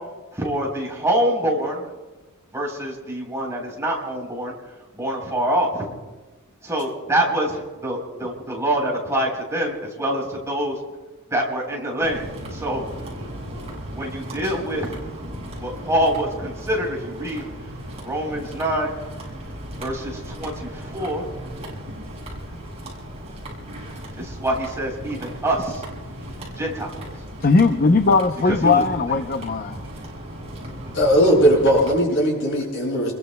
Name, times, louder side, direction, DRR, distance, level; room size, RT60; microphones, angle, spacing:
voice 1, 0.3-1.8 2.5-4.5 4.9-5.8 6.6-10.8 11.3-12.2 12.5-12.9 13.9-15.0 15.2-17.5 18.0-18.9 19.8-21.2 24.2-25.8 26.6-26.9 28.5-28.8, right 1 dB, 15° right, -2 dB, 3.7 m, -25 dB
sound 1, 12.0-31.9, equal, 30° right, 6.4 m, -36 dB
voice 2, 27.4-29.8, left 3 dB, 40° left, 7 dB, 0.6 m, -18 dB
voice 3, 30.9-33.1, equal, 55° left, -3 dB, 7.0 m, -18 dB
29.5 x 22.0 x 2.2 m, 1.2 s
head